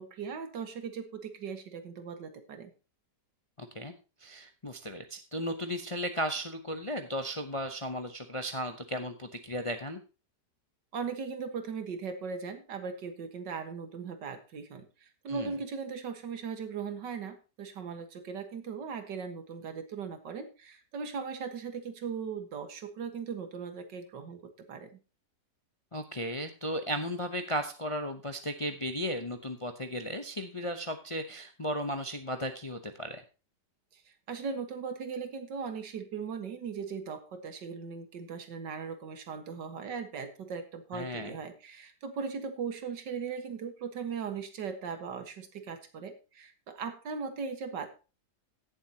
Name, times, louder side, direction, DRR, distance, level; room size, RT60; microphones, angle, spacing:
voice 1, 0.0-2.7 10.9-24.9 33.9-34.0 34.3-47.9, right 5 dB, 80° right, 8 dB, 2.1 m, -38 dB
voice 2, 3.6-3.9 4.2-10.0 15.3-15.5 25.9-33.2 40.9-41.4, equal, 30° left, 7 dB, 0.5 m, -35 dB
16.5 x 7.5 x 2.9 m, 0.31 s
omnidirectional pair, 1.9 m